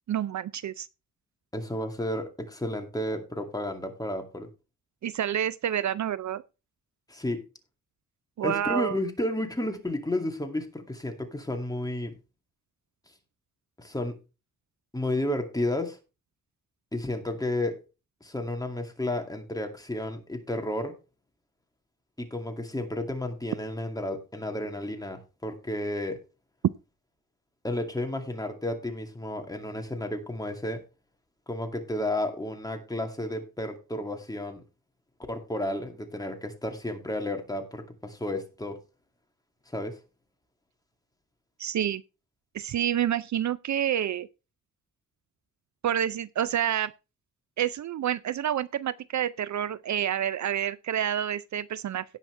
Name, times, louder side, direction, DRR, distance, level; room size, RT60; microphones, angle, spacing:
voice 1, 0.1-0.9 5.0-6.4 8.4-9.0 41.6-42.0 42.5-44.3 45.8-46.9 47.6-52.0, right 10 dB, 60° right, 0.5 m, -28 dB
voice 2, 1.5-4.5 7.1-7.4 8.4-12.1 13.8-14.1 14.9-16.0 16.9-17.8 18.2-20.9 22.2-26.2 27.6-30.8 31.5-34.6 35.3-38.8 39.7-40.0, left 1 dB, 10° left, 2.3 m, -32 dB
17.0 x 5.9 x 3.3 m
wide cardioid pair, 115°, 32 cm